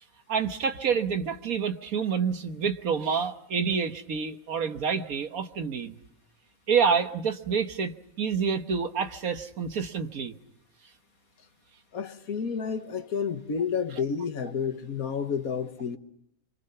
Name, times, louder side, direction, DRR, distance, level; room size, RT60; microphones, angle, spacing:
voice 1, 0.3-6.0 6.7-10.3, right 6 dB, 75° right, 1.7 m, -28 dB
voice 2, 11.9-16.0, left 6 dB, 75° left, 1.8 m, -30 dB
27.0 x 25.0 x 5.8 m
omnidirectional pair, 1.5 m